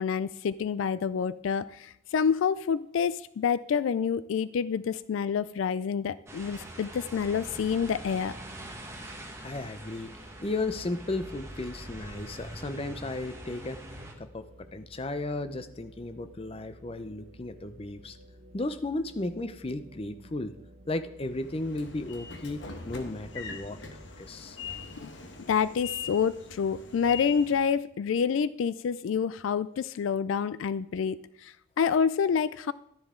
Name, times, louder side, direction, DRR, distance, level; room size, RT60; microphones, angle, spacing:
voice 1, 0.0-8.3 25.5-32.7, left 6 dB, 75° left, 17 dB, 0.3 m, -28 dB
sound 1, 6.3-14.1, right 1 dB, 15° right, 1.4 m, -44 dB
sound 2, 7.4-24.3, equal, 85° right, 1.3 m, -53 dB
voice 2, 9.4-13.8 14.2-18.2 18.5-20.6 20.9-23.8 24.2-24.6, left 2 dB, 30° left, 11 dB, 0.6 m, -35 dB
Train / Sliding door, 21.2-27.7, left 6 dB, 60° left, 1.3 m, -42 dB
12.5 x 10.0 x 3.7 m, 0.74 s
head